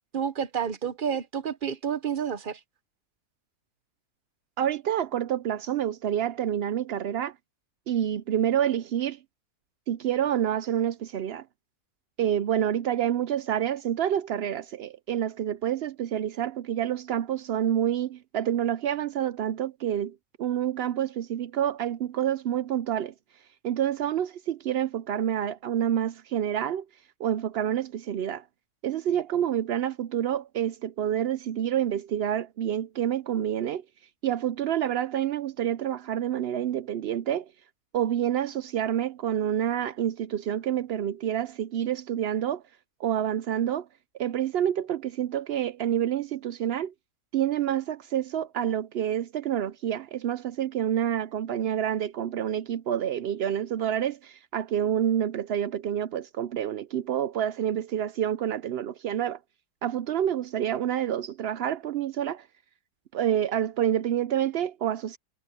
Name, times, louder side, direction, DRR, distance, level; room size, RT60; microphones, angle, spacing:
voice 1, 0.1-2.6, right 8 dB, 50° right, 0.7 m, -30 dB
voice 2, 4.6-7.3 7.9-9.2 9.9-11.4 12.2-23.1 23.6-26.8 27.2-28.4 28.8-33.8 34.2-37.5 37.9-42.6 43.0-43.9 44.2-46.9 47.3-59.4 59.8-62.4 63.1-65.2, right 10 dB, 85° right, 0.5 m, -28 dB
omnidirectional pair, 1.6 m